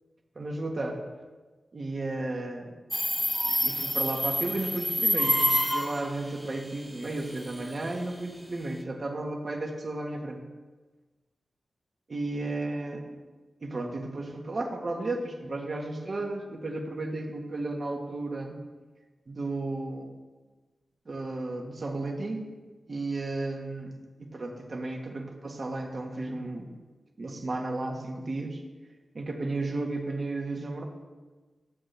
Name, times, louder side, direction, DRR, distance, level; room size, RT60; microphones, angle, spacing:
voice 1, 0.3-1.0 1.7-2.7 3.4-10.4 12.1-13.2 13.6-18.6 19.3-20.1 21.0-22.5 22.9-26.7 27.2-28.6 29.1-30.8, right 2 dB, 50° right, 2 dB, 1.4 m, -33 dB
Subway metro underground, 2.9-6.0, equal, ahead, 0.9 m, -27 dB
13.0 x 7.7 x 3.3 m, 1.3 s
wide cardioid pair, 80°, 0 cm